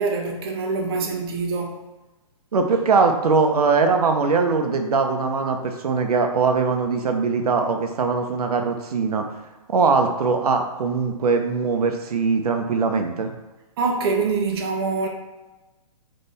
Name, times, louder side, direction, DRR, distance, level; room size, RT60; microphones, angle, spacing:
voice 1, 0.0-1.8 13.8-15.1, right 4 dB, 40° right, 1 dB, 0.7 m, -24 dB
voice 2, 2.5-9.3 9.7-13.3, right 4 dB, 80° right, 5 dB, 0.8 m, -21 dB
3.6 x 3.3 x 4.0 m, 1.1 s
hypercardioid pair, 160°, 19 cm